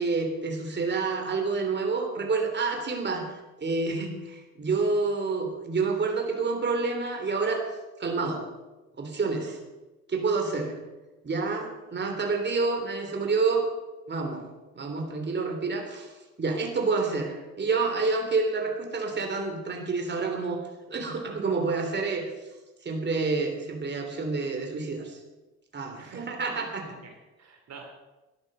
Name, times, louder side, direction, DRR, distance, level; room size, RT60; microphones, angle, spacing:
voice 1, 0.0-3.3 3.6-7.6 8.0-8.4 9.0-9.6 10.1-10.8 11.2-13.6 14.1-14.5 14.7-20.6 20.9-22.3 22.8-25.2 25.7-27.0, right 4 dB, 35° right, 3 dB, 3.4 m, -28 dB
voice 2, 26.0-26.6 27.0-27.8, right 5 dB, 60° right, 2 dB, 2.8 m, -48 dB
13.5 x 11.0 x 6.8 m, 1.1 s
cardioid pair, 90°, 30 cm